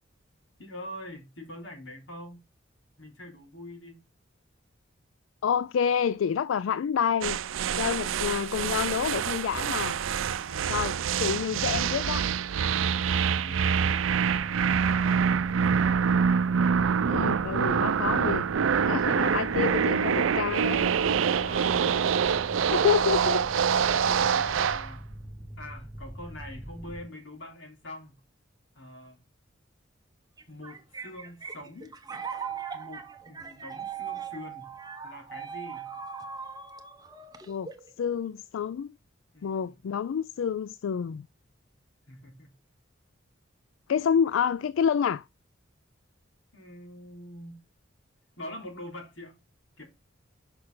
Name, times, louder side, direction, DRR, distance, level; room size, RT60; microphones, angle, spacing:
voice 1, 0.6-2.4 3.0-4.0 10.4-10.8 12.9-16.0 17.3-17.9 21.1-22.3 23.9-25.1 25.6-28.2 28.7-29.2 30.5-31.9 32.7-34.7 35.0-36.0 39.3-39.8 42.1-42.6 46.5-47.6 48.4-49.3 49.8-49.9, left 1 dB, 75° left, 3.2 m, -45 dB
voice 2, 5.4-7.4 7.8-10.0 10.7-12.3 17.1-18.5 18.9-20.8 22.7-23.4 23.9-24.0 37.5-37.7 38.0-38.9 39.4-41.3 43.9-45.2, left 7 dB, 90° left, 0.3 m, -28 dB
sound 1, 7.2-24.9, right 7 dB, 90° right, 0.5 m, -25 dB
Mechanical fan, 14.2-27.0, equal, ahead, 1.8 m, -43 dB
sound 2, 30.4-37.9, right 7 dB, 20° right, 0.8 m, -39 dB
6.5 x 5.7 x 3.8 m
head